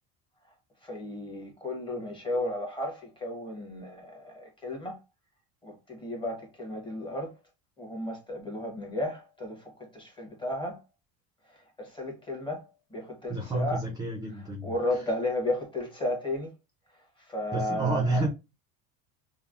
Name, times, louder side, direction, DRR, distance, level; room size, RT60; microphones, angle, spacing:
voice 1, 0.8-5.0 5.6-7.3 7.8-10.8 11.5-12.6 12.9-13.8 14.6-16.5 17.3-18.3, left 1 dB, 15° left, 1.0 m, -34 dB
voice 2, 13.3-14.7 17.5-18.3, right 2 dB, 10° right, 0.4 m, -29 dB
3.1 x 2.1 x 2.4 m
cardioid pair, 140°, 38 cm